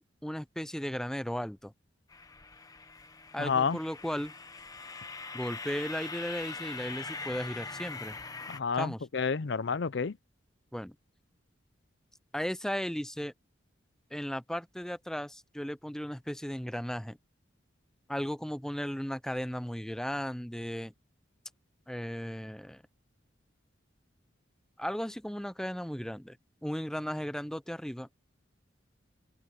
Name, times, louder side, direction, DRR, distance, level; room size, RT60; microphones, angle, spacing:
voice 1, 0.0-1.7 3.3-4.3 5.3-8.2 8.7-9.1 10.7-10.9 12.3-13.3 14.1-17.2 18.1-20.9 21.9-22.8 24.8-26.4 26.6-28.1, equal, 5° left, 0.6 m, -36 dB
sound 1, 2.1-8.6, left 4 dB, 20° left, 1.0 m, -42 dB
voice 2, 3.4-3.8 8.5-10.1, left 5 dB, 65° left, 0.6 m, -30 dB
head